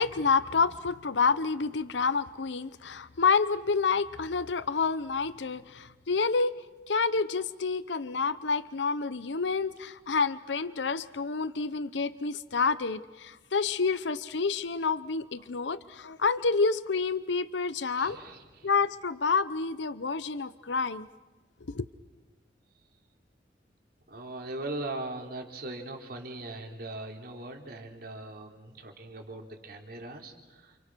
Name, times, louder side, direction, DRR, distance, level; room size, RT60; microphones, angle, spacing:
voice 1, 0.0-6.5 6.9-18.2 18.6-21.1 21.7-21.8, left 4 dB, 85° left, 15 dB, 0.8 m, -28 dB
voice 2, 17.9-18.7 22.7-22.8 24.1-30.8, right 2 dB, 60° right, 2 dB, 3.6 m, -40 dB
29.5 x 28.5 x 6.2 m, 1.2 s
head